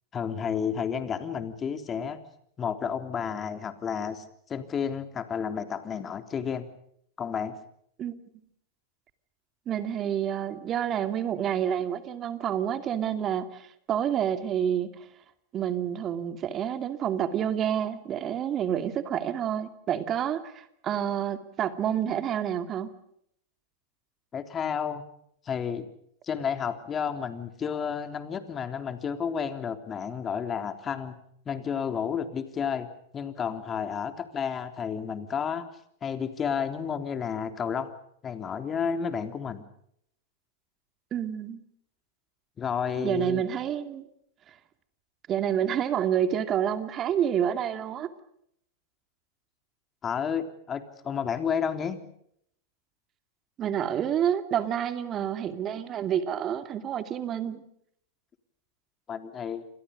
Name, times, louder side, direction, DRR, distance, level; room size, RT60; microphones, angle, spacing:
voice 1, 0.1-2.2 2.6-4.2 4.5-6.7 7.2-7.5 24.3-25.0 25.4-25.9 26.2-31.2 31.4-32.9 33.1-35.7 36.0-37.9 38.2-39.6 42.6-43.4 50.0-52.0 59.1-59.6, left 7 dB, 25° left, 8 dB, 3.4 m, -31 dB
voice 2, 9.7-15.1 15.5-22.9 41.1-41.6 42.9-44.1 45.3-48.1 53.6-57.6, right 9 dB, 35° right, 9 dB, 2.6 m, -28 dB
29.5 x 26.5 x 5.3 m, 0.71 s
hypercardioid pair, 100°, 0 cm